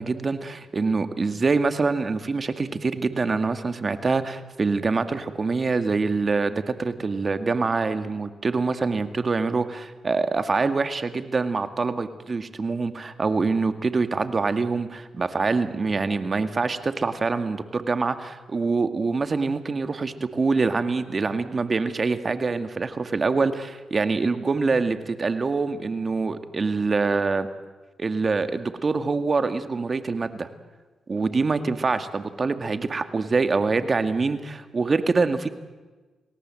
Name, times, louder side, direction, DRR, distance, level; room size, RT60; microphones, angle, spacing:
voice 1, 0.0-27.5 28.0-30.5 31.1-35.5, right 4 dB, 40° right, 9 dB, 2.1 m, -25 dB
29.5 x 18.5 x 7.8 m, 1.3 s
cardioid pair, 70°, 0 cm